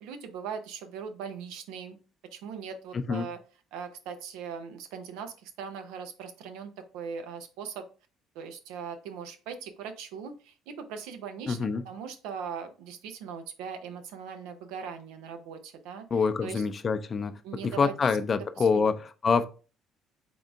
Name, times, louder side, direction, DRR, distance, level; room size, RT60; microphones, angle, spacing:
voice 1, 0.0-2.0 2.3-3.4 3.7-7.9 8.3-11.6 11.8-16.6 17.4-18.9, right 6 dB, 80° right, 7 dB, 0.6 m, -40 dB
voice 2, 2.9-3.3 11.5-11.8 16.1-17.3 17.6-18.9 19.2-19.4, left 5 dB, 40° left, 11 dB, 0.5 m, -26 dB
3.8 x 3.5 x 3.4 m, 0.35 s
supercardioid pair, 65°, 0 cm